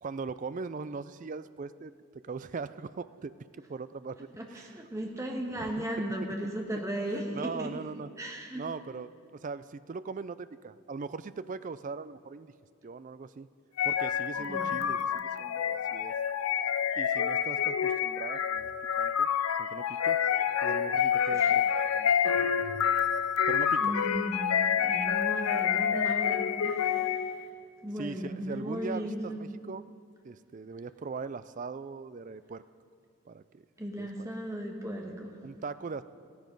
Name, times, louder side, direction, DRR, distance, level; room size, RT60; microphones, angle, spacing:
voice 1, 0.0-4.7 5.6-5.8 7.3-8.1 8.5-12.5 12.8-13.5 13.8-15.0 15.4-16.1 17.0-18.7 19.0-19.3 19.6-20.2 20.6-21.6 21.9-22.1 23.5-23.9 28.0-29.9 30.2-32.6 33.3-33.7 34.0-34.3 35.4-36.0, right 4 dB, 35° right, 14 dB, 0.3 m, -40 dB
voice 2, 4.4-7.7 8.2-8.6 14.4-14.7 21.3-21.5 22.2-22.3 23.8-24.5 24.8-27.5 27.8-29.4 33.8-35.4, right 1 dB, 15° right, 0 dB, 1.5 m, -36 dB
sound 1, 13.8-27.4, left 8 dB, 75° left, 0.5 m, -28 dB
15.5 x 14.0 x 5.3 m, 2.3 s
head